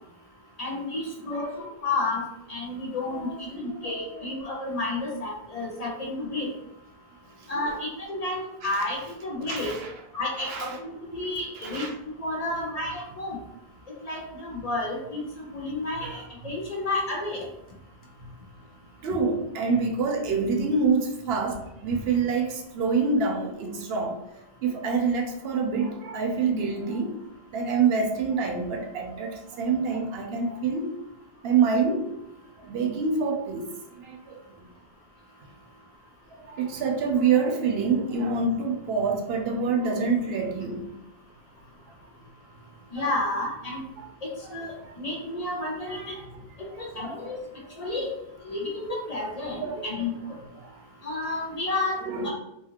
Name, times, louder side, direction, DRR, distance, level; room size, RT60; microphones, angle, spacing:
voice 1, 0.6-2.2 2.5-6.5 7.5-9.7 10.1-11.9 12.2-13.4 14.0-15.2 15.5-17.5 42.9-43.8 44.2-46.0 46.8-47.4 47.8-48.1 48.4-50.1 51.0-52.3, left 2 dB, 50° left, -2 dB, 0.6 m, -31 dB
voice 2, 1.3-1.7 3.1-4.2 7.5-7.6 8.6-8.7 9.4-9.9 10.4-10.8 11.6-11.9 12.4-12.7 16.0-16.2 19.0-24.2 24.6-27.2 27.5-30.9 31.4-32.1 32.6-33.7 34.0-34.4 36.5-40.9 43.0-43.1 44.0-44.1 44.8-44.9 45.9-46.1 47.0-47.2 47.8-47.9 49.5-49.9 50.6-50.8 52.1-52.3, right 4 dB, 75° right, 2 dB, 0.8 m, -27 dB
2.7 x 2.4 x 2.9 m, 0.82 s
omnidirectional pair, 1.0 m